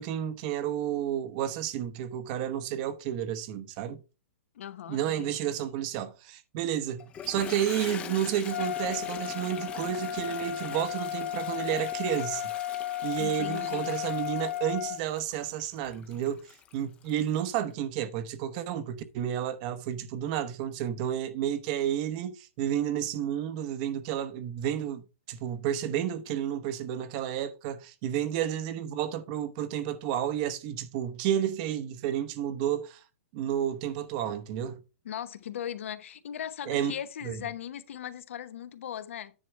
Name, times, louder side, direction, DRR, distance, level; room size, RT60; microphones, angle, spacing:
voice 1, 0.0-4.0 4.9-12.5 13.0-16.5 16.7-33.0 33.3-34.8 36.7-36.9 37.2-37.4, right 10 dB, 35° right, 0.9 m, -31 dB
voice 2, 4.5-5.5 13.2-14.0 35.0-39.3, left 10 dB, 65° left, 0.9 m, -38 dB
Toilet flush, 7.0-17.6, left 8 dB, 15° left, 0.7 m, -43 dB
Trumpet, 8.5-15.0, left 11 dB, 80° left, 1.5 m, -34 dB
9.9 x 4.6 x 4.5 m
hypercardioid pair, 155°, 7 cm